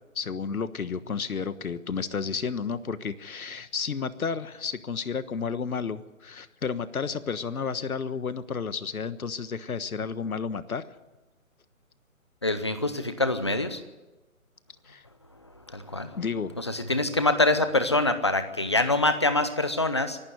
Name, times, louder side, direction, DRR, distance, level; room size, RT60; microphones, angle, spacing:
voice 1, 0.1-10.8 14.9-15.0 16.1-16.5, left 5 dB, 80° left, 13 dB, 1.4 m, -32 dB
voice 2, 12.4-13.8 15.7-16.2 16.6-20.2, left 2 dB, 20° left, 10 dB, 0.7 m, -25 dB
24.0 x 11.5 x 9.4 m, 1.1 s
hypercardioid pair, 170°, 42 cm